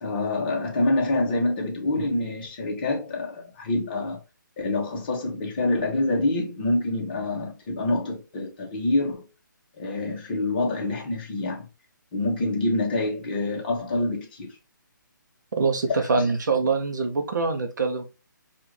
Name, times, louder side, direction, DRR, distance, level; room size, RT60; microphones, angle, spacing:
voice 1, 0.0-4.2 4.6-9.3 9.8-11.7 12.1-14.6 16.1-16.2, left 2 dB, 30° left, 1.2 m, -26 dB
voice 2, 15.6-18.1, right 4 dB, 60° right, 0.8 m, -24 dB
4.8 x 2.5 x 3.2 m
hypercardioid pair, 165°, 11 cm